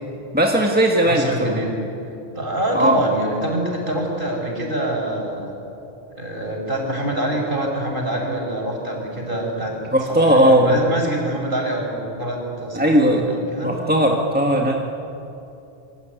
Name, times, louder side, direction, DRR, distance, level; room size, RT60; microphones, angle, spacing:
voice 1, 0.3-1.5 2.7-3.0 9.9-10.8 12.7-13.3 13.6-14.8, right 1 dB, 10° right, 0 dB, 1.8 m, -17 dB
voice 2, 1.0-1.8 2.3-5.5 6.2-9.7 10.1-13.7, right 1 dB, 45° right, 0 dB, 6.3 m, -25 dB
26.5 x 23.0 x 9.4 m, 2.8 s
omnidirectional pair, 1.2 m